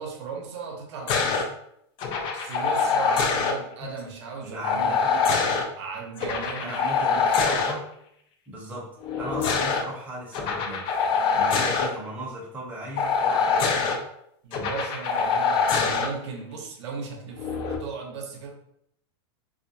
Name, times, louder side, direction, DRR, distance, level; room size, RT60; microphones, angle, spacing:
voice 1, 0.0-1.5 2.3-5.0 5.8-6.8 7.1-7.5 14.4-18.5, right 5 dB, 80° right, 1 dB, 0.6 m, -37 dB
sound 1, 1.1-1.4 2.0-3.5 4.6-5.6 6.2-7.7 9.0-9.8 10.3-11.9 13.0-14.0 14.5-16.1 17.4-17.8, left 5 dB, 35° left, 0.4 m, -24 dB
voice 2, 4.4-5.2 6.6-7.9 8.5-8.9 9.2-10.8 11.3-13.7, right 1 dB, 10° right, -4 dB, 0.6 m, -37 dB
2.4 x 2.1 x 2.6 m, 0.74 s
supercardioid pair, 145°, 15 cm